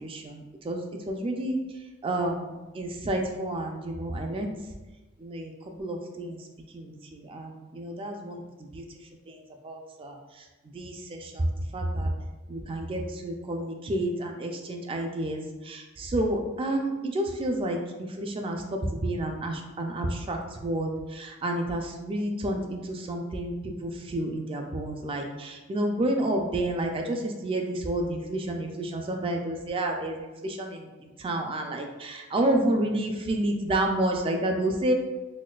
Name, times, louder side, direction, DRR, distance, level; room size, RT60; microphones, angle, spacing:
voice 1, 0.0-1.6 2.0-4.5 5.2-5.5 5.8-6.4 6.7-8.8 9.3-9.4 9.6-10.2 10.7-11.5 11.7-12.1 12.5-23.5 23.8-30.9 31.2-34.9, right 1 dB, 25° right, 3 dB, 0.3 m, -30 dB
4.1 x 2.2 x 2.3 m, 1.1 s
head